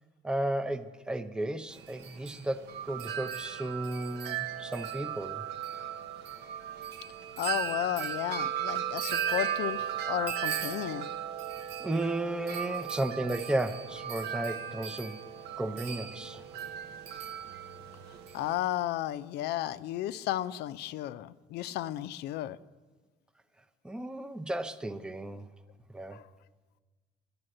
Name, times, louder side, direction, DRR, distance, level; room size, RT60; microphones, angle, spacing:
voice 1, 0.2-5.5 11.8-15.2 15.6-16.4 23.8-25.5 25.9-26.2, right 1 dB, 5° right, 9 dB, 0.6 m, -34 dB
Wind chime, 1.7-18.6, right 9 dB, 85° right, 0.9 m, -36 dB
voice 2, 7.4-11.1 18.3-22.6 26.1-26.2, left 13 dB, 80° left, 15 dB, 0.5 m, -33 dB
11.0 x 9.7 x 7.7 m, 1.3 s
cardioid pair, 110°, 17 cm